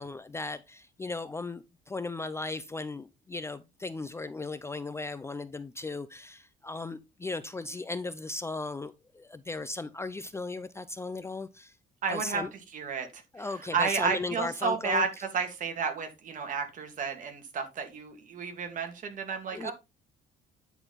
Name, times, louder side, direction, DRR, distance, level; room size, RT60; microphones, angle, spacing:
voice 1, 0.0-11.8 12.1-12.5 13.3-15.0 19.5-19.7, left 3 dB, 15° left, 0.5 m, -36 dB
voice 2, 12.0-12.4 12.7-13.5 13.7-19.7, right 5 dB, 50° right, 2.4 m, -32 dB
9.9 x 4.5 x 4.0 m
cardioid pair, 110°, 17 cm